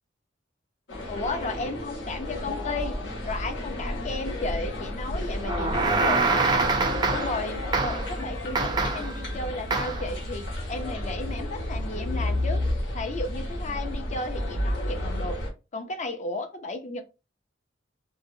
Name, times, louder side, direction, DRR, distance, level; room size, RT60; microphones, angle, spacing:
sound 1, 0.9-15.5, left 1 dB, 75° left, 0.9 m, -31 dB
voice 1, 1.1-3.0 3.2-6.7 7.1-12.6 12.9-15.4 15.7-17.0, left 3 dB, 40° left, 0.5 m, -34 dB
sound 2, 5.4-7.4 7.7-8.1 8.5-9.2 9.7-10.1, right 4 dB, 25° right, 0.4 m, -25 dB
2.7 x 2.0 x 2.6 m
head